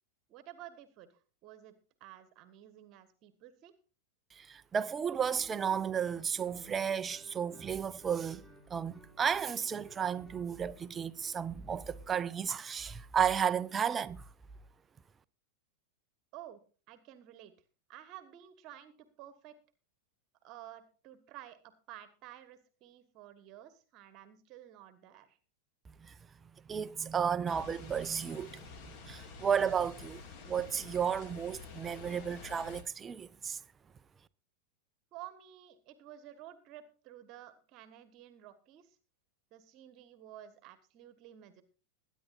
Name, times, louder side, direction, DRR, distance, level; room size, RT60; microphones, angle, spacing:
voice 1, 0.3-3.7 16.3-16.6 16.9-17.5 17.9-19.5 20.4-25.4 35.1-39.0 39.5-41.6, right 12 dB, 40° right, 1.4 m, -52 dB
voice 2, 4.3-8.4 8.7-14.2 26.0-26.1 26.7-28.7 29.0-33.6, right 7 dB, 20° right, 0.6 m, -33 dB
Guitar, 5.2-12.7, right 2 dB, 10° left, 5.2 m, -58 dB
sound 1, 27.5-32.8, left 5 dB, 40° left, 2.2 m, -49 dB
22.0 x 10.0 x 2.6 m
figure-of-eight pair, 90°, 0 cm